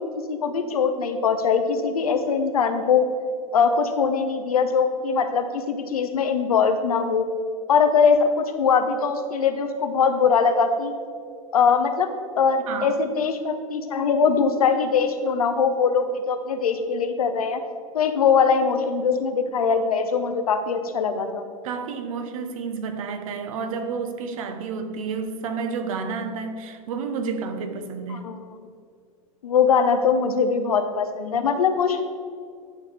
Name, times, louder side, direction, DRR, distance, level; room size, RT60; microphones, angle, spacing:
voice 1, 0.0-3.0 3.5-7.2 7.7-10.9 11.5-12.1 12.4-17.6 17.9-21.4 28.1-28.4 29.4-32.0, left 6 dB, 85° left, 0.8 m, -21 dB
voice 2, 12.7-13.0 21.6-28.3, right 5 dB, 70° right, 0.9 m, -30 dB
11.0 x 5.6 x 3.4 m
hypercardioid pair, 100°, 18 cm